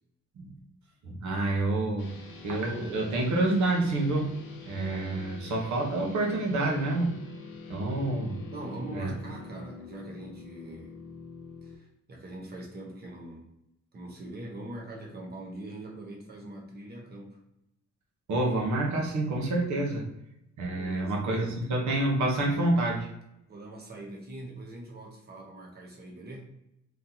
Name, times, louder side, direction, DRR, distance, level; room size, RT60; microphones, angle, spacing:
voice 1, 1.0-2.1 2.4-4.4 4.6-7.1 7.7-8.4 8.9-9.1 18.3-20.0 20.6-23.1, right 2 dB, 70° right, -1 dB, 1.2 m, -28 dB
sound 1, 2.0-11.7, left 4 dB, 40° left, 0.8 m, -46 dB
voice 2, 8.5-11.0 11.6-13.5 13.9-17.4 20.6-21.7 23.5-26.5, right 1 dB, 35° right, -1 dB, 0.9 m, -42 dB
3.9 x 3.2 x 2.8 m, 0.83 s
cardioid pair, 175°, 30 cm